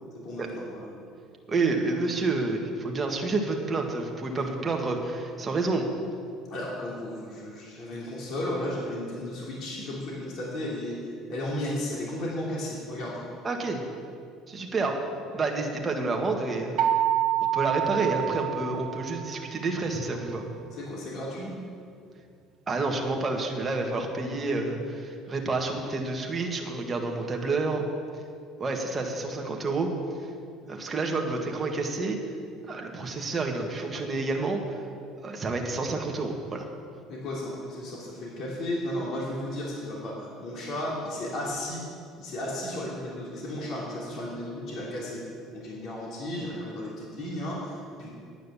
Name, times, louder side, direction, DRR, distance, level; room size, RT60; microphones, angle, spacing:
voice 1, 0.2-0.9 4.3-4.4 6.5-11.0 11.3-13.2 20.7-21.5 37.1-41.8 42.2-45.2 45.5-48.1, left 1 dB, 55° left, -4 dB, 3.1 m, -34 dB
voice 2, 1.5-5.9 13.4-13.8 14.5-15.0 15.3-16.8 17.5-20.4 22.7-27.8 28.6-29.9 30.7-32.2 32.7-34.8 35.2-36.6, right 3 dB, 25° right, 1 dB, 1.6 m, -29 dB
sound 1, 16.8-19.6, right 11 dB, 60° right, 1.0 m, -27 dB
10.0 x 9.1 x 7.0 m, 2.3 s
cardioid pair, 120°, 0 cm